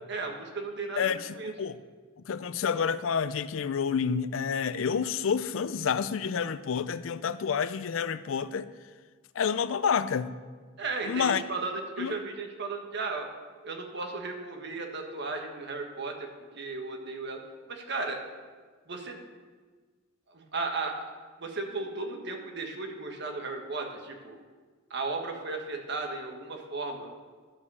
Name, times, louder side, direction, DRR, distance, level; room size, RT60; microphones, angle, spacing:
voice 1, 0.1-1.5 10.8-13.3 13.6-16.3 16.5-17.4 17.7-18.2 18.9-19.2 20.3-20.9 21.4-24.4 24.9-27.1, right 3 dB, 60° right, 1.5 m, -35 dB
voice 2, 1.0-1.7 2.3-8.7 9.4-10.3 11.1-11.4 12.0-12.1, left 6 dB, 75° left, 0.4 m, -29 dB
11.5 x 5.4 x 6.9 m
head